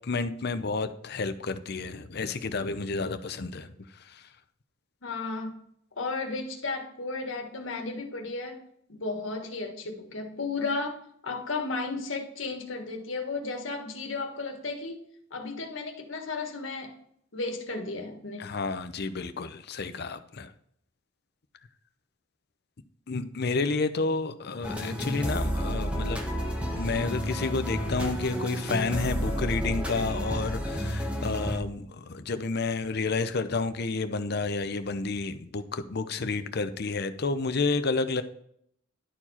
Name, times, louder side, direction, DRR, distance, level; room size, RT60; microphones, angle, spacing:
voice 1, 0.0-4.3 18.4-20.5 23.1-26.2 26.8-38.2, left 3 dB, 55° left, 0.7 m, -30 dB
voice 2, 5.0-5.6 6.0-8.6 8.9-15.0 15.3-16.9 17.3-18.6, left 3 dB, 75° left, 1.6 m, -34 dB
sound 1, 24.6-31.6, equal, 5° right, 1.2 m, -31 dB
11.5 x 4.6 x 4.3 m
head